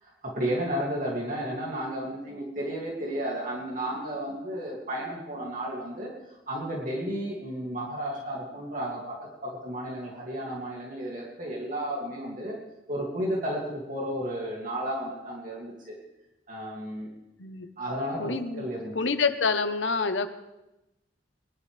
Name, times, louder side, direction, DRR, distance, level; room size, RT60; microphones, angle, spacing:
voice 1, 0.0-6.1 6.5-12.6 12.9-16.0 16.5-17.1 17.8-18.9, right 1 dB, 50° right, -3 dB, 2.5 m, -33 dB
voice 2, 18.2-18.7 18.9-20.3, left 4 dB, 90° left, 9 dB, 1.0 m, -27 dB
22.5 x 11.5 x 3.4 m, 0.96 s
head